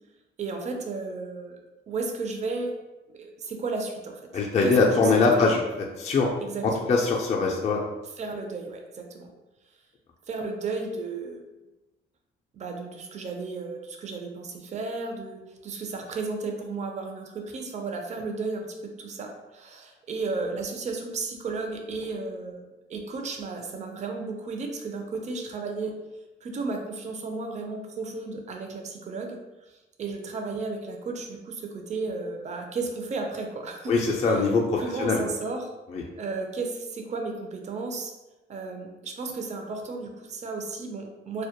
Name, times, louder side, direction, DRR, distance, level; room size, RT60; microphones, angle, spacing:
voice 1, 0.4-1.6 1.9-2.7 3.1-4.2 4.6-5.5 6.4-6.9 8.2-9.3 10.3-11.4 12.5-25.9 26.4-29.4 30.0-33.9 34.3-34.4 34.8-35.7 36.2-38.1 38.5-41.4, right 3 dB, 35° right, 3 dB, 0.4 m, -33 dB
voice 2, 4.3-5.6 6.0-6.3 6.6-7.8 33.9-35.2 35.9-36.0, left 4 dB, 35° left, -1 dB, 0.3 m, -22 dB
2.2 x 2.0 x 2.7 m, 1.1 s
cardioid pair, 90°, 20 cm